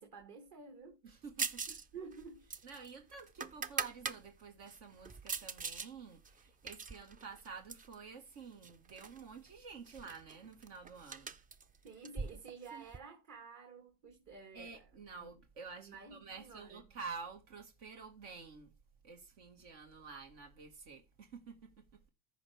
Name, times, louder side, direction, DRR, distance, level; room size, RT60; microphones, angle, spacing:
voice 1, 0.0-1.0 1.9-2.5 11.8-14.9 15.1-15.3 15.8-16.8, right 5 dB, 45° right, 1.8 m, -51 dB
voice 2, 1.0-1.7 2.6-11.3 14.5-18.7 19.0-22.1, right 5 dB, 70° right, 1.9 m, -50 dB
sound 1, 1.4-1.8 2.1-4.2 4.7-5.9 6.2-7.9 8.6-9.2 9.5-9.6 9.9-13.0, right 4 dB, 20° right, 0.5 m, -42 dB
14.5 x 5.0 x 3.4 m
supercardioid pair, 100°, 42 cm